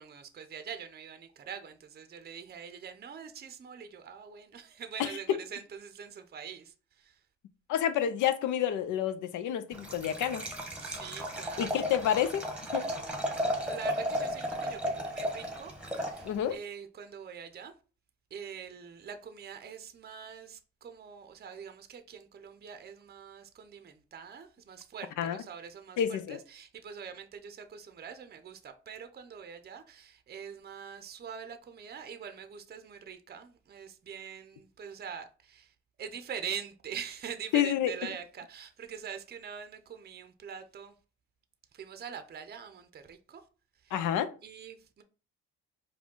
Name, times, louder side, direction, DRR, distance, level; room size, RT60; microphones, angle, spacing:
voice 1, 0.0-7.2 10.8-11.9 12.7-17.7 18.3-35.7 36.0-40.9 41.7-43.4 43.8-43.9 44.4-45.0, right 7 dB, 35° right, 0.6 m, -44 dB
voice 2, 7.7-10.5 11.6-12.4 12.7-12.9 16.2-16.6 25.2-25.4 26.0-26.4 37.5-37.9 43.9-44.3, left 10 dB, 80° left, 0.6 m, -29 dB
Liquid, 9.7-16.6, equal, 5° right, 1.0 m, -34 dB
4.8 x 2.2 x 3.7 m
cardioid pair, 90°, 30 cm